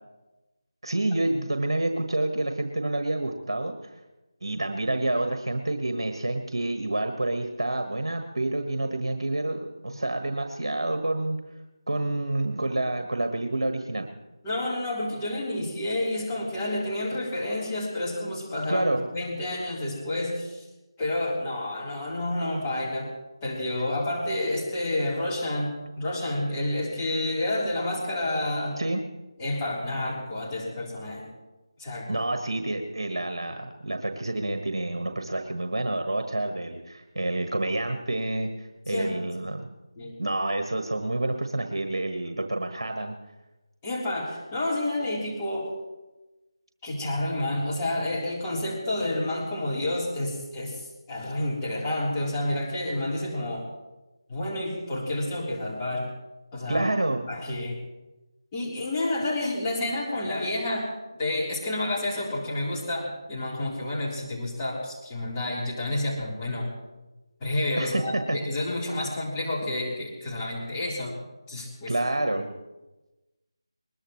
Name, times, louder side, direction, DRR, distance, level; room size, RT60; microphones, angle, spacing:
voice 1, 0.8-3.9 4.4-11.4 11.9-14.1 18.7-19.0 28.8-29.0 32.1-39.7 40.2-43.2 56.7-57.2 67.8-68.4 71.9-72.5, right 2 dB, 65° right, 5 dB, 1.6 m, -28 dB
voice 2, 14.4-18.9 19.1-20.6 21.0-23.1 23.4-28.8 29.4-31.3 31.8-32.2 38.9-39.2 40.0-40.1 43.8-45.7 46.8-50.8 51.1-53.7 54.3-56.1 56.5-56.8 57.3-57.8 58.5-60.9 61.2-66.7 67.4-71.2 71.5-71.9 72.3-72.4, left 1 dB, 15° left, -7 dB, 4.0 m, -29 dB
21.0 x 21.0 x 3.2 m, 1.1 s
figure-of-eight pair, 165°, 3 cm